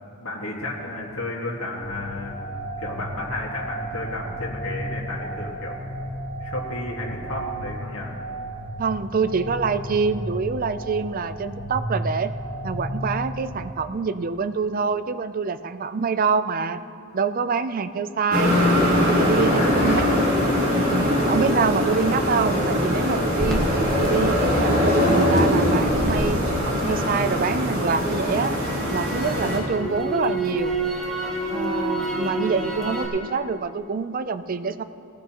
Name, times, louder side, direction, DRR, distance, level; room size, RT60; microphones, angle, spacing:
voice 1, 0.2-5.8 6.4-8.1 19.5-20.5, left 2 dB, 70° left, -3 dB, 1.8 m, -33 dB
sound 1, 1.8-13.7, right 1 dB, 45° left, 2.6 m, -33 dB
voice 2, 8.8-12.3 12.6-16.8 17.1-18.6 19.1-20.1 20.7-23.7 24.0-28.6 28.9-30.7 31.5-34.8, right 5 dB, 40° right, 12 dB, 0.4 m, -26 dB
sound 2, 18.3-29.6, equal, 65° right, 3.8 m, -21 dB
Crackle, 23.4-27.5 27.9-33.1, right 1 dB, ahead, 1.4 m, -29 dB
18.5 x 15.0 x 3.0 m, 2.7 s
head